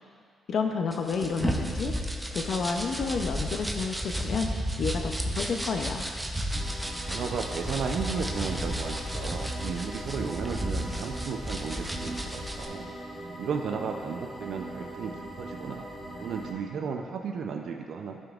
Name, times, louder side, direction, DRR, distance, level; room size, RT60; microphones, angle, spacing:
voice 1, 0.5-1.9 2.3-4.5 4.8-6.1, left 5 dB, 60° left, 4 dB, 0.5 m, -30 dB
sound 1, 0.9-12.7, equal, 5° right, 0.7 m, -33 dB
sound 2, 6.5-16.5, right 1 dB, 15° left, 1.2 m, -41 dB
voice 2, 7.1-12.9 13.4-15.9 16.2-18.2, right 6 dB, 70° right, 3 dB, 0.5 m, -34 dB
15.0 x 5.2 x 2.4 m, 2.2 s
cardioid pair, 130°, 0 cm